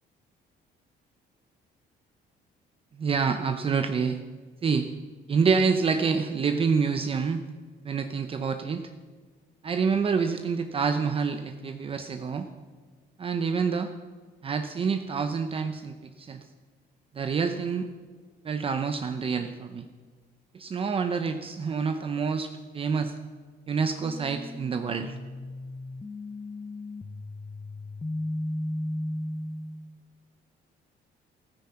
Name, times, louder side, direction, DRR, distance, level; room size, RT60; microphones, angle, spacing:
voice 1, 2.9-4.2 4.6-4.9 5.3-7.5 7.8-8.9 9.6-12.5 13.2-13.9 14.4-16.4 17.1-17.9 18.4-19.9 20.5-23.2 23.7-25.2, right 5 dB, 30° right, 7 dB, 0.7 m, -27 dB
sound 1, 24.0-30.0, left 1 dB, 15° left, 0.6 m, -35 dB
15.5 x 14.5 x 5.8 m, 1.5 s
cardioid pair, 155°, 18 cm